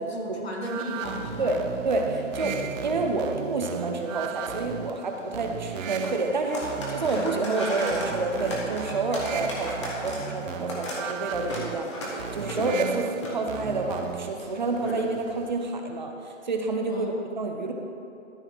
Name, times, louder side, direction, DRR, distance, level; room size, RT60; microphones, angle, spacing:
voice 1, 0.0-1.5 2.4-2.7 16.9-17.2, equal, 55° left, -1 dB, 1.9 m, -35 dB
sound 1, 0.6-14.4, right 8 dB, 80° right, 0.6 m, -36 dB
sound 2, 1.0-15.5, left 1 dB, 25° left, 1.1 m, -38 dB
voice 2, 1.4-17.7, right 3 dB, 35° right, 3 dB, 0.7 m, -29 dB
13.0 x 4.7 x 4.3 m, 2.8 s
hypercardioid pair, 175°, 38 cm